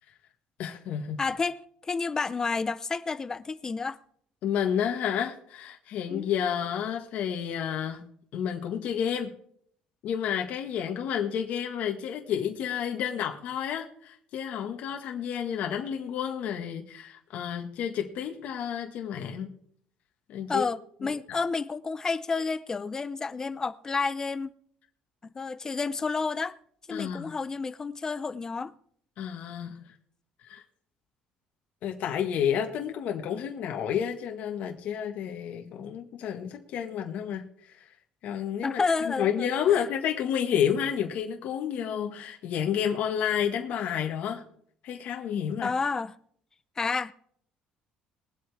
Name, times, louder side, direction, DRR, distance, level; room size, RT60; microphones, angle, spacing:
voice 1, 0.6-1.2 4.4-8.0 8.3-9.4 10.0-19.5 20.3-20.6 21.0-21.4 26.9-27.4 29.2-29.8 30.4-30.6 31.8-37.8 38.2-44.4 44.8-45.7, left 8 dB, 65° left, 1.7 m, -30 dB
voice 2, 1.2-4.0 6.1-6.3 20.5-24.5 25.2-26.6 26.9-28.7 38.6-39.8 45.6-46.1 46.8-47.1, left 4 dB, 20° left, 0.5 m, -30 dB
22.0 x 8.1 x 3.6 m
cardioid pair, 130°, 3 cm